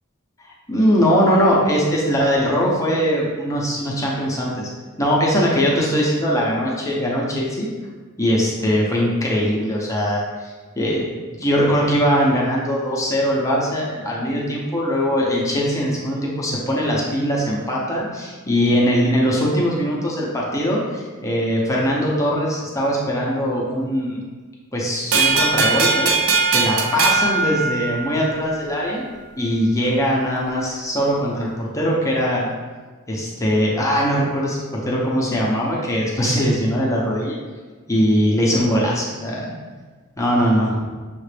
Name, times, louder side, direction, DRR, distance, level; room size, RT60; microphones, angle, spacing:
voice 1, 0.7-4.7 5.0-7.7 8.2-11.0 11.3-24.2 24.7-26.1 26.5-29.0 29.4-32.5 33.1-37.4 37.9-39.5 40.2-40.8, equal, 15° left, -4 dB, 0.6 m, -21 dB
sound 1, 25.1-28.4, right 4 dB, 65° right, 0.5 m, -19 dB
6.5 x 2.5 x 3.3 m, 1.4 s
head